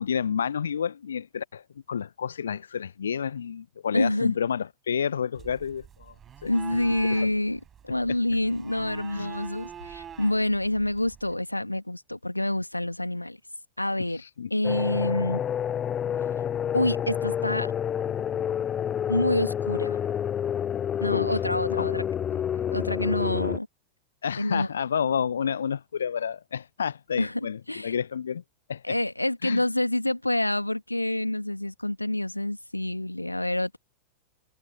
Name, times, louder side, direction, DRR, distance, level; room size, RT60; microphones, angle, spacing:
voice 1, 0.0-6.1 6.4-6.5 7.1-7.3 9.1-9.3 14.1-14.5 21.1-21.4 21.8-21.9 24.2-28.4 28.7-29.0 29.4-29.6, left 7 dB, 70° left, 0.7 m, -30 dB
voice 2, 3.9-4.4 6.4-13.4 13.8-14.2 14.5-15.4 16.7-17.7 19.1-20.0 21.0-22.0 22.3-22.4 22.7-23.7 24.4-24.7 27.2-28.0 28.8-33.8, left 1 dB, 85° left, 2.2 m, -27 dB
sound 1, 5.4-11.3, right 8 dB, 25° right, 6.7 m, -45 dB
sound 2, 14.6-23.6, left 9 dB, 25° left, 0.6 m, -29 dB
figure-of-eight pair, 90°, 0 cm